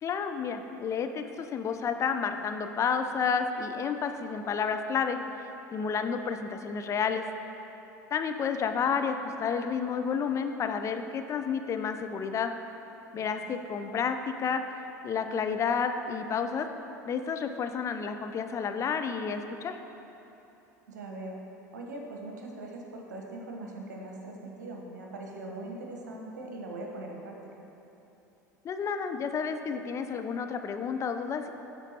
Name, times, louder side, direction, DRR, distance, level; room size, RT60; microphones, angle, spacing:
voice 1, 0.0-5.2 5.7-7.2 8.1-12.5 13.1-16.7 17.0-19.8 28.6-31.5, left 6 dB, 30° left, 7 dB, 0.4 m, -30 dB
voice 2, 13.1-13.6 20.9-21.4 21.7-27.5, right 2 dB, 75° right, 1 dB, 1.0 m, -41 dB
13.0 x 4.4 x 2.8 m, 3.0 s
figure-of-eight pair, 75°, 9 cm